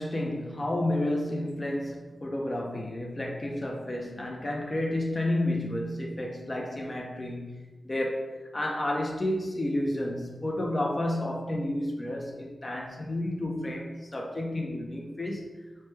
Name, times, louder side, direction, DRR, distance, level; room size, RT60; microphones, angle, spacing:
voice 1, 0.0-15.5, left 1 dB, 40° left, 0 dB, 0.5 m, -31 dB
3.1 x 2.1 x 3.1 m, 1.1 s
cardioid pair, 45°, 0 cm